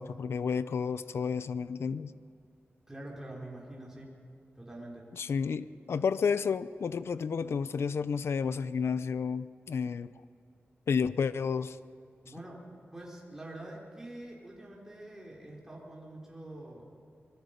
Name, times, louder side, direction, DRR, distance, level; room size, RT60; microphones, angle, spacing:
voice 1, 0.0-2.1 5.2-10.1 10.9-11.8, left 6 dB, 85° left, 14 dB, 0.6 m, -31 dB
voice 2, 2.9-4.1 4.5-5.1 12.2-12.6 12.9-16.9, right 1 dB, 10° right, -4 dB, 4.4 m, -45 dB
25.5 x 21.5 x 5.3 m, 2.5 s
wide cardioid pair, 140°, 4 cm